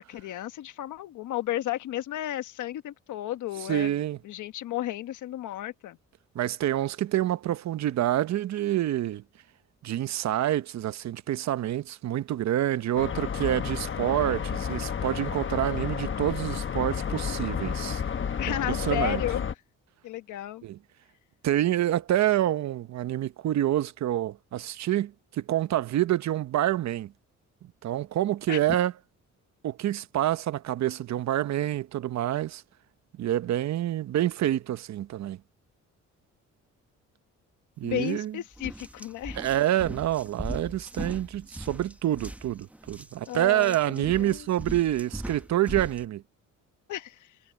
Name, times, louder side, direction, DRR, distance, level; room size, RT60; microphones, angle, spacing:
voice 1, 0.1-3.9 4.2-6.0 18.4-19.5 20.0-20.6 28.5-28.6 37.8-39.4 43.3-44.4 46.9-47.3, left 13 dB, 80° left, 1.3 m, -33 dB
voice 2, 3.7-4.2 6.3-9.2 9.8-18.0 18.5-19.2 20.6-20.8 21.4-27.1 27.8-28.9 29.6-32.6 33.2-35.4 37.8-38.4 39.3-46.2, right 13 dB, 65° right, 0.9 m, -27 dB
sound 1, 13.0-19.5, left 7 dB, 40° left, 1.1 m, -31 dB
sound 2, 37.9-38.1 38.5-46.1, right 1 dB, 5° right, 1.2 m, -39 dB
cardioid pair, 90°, 30 cm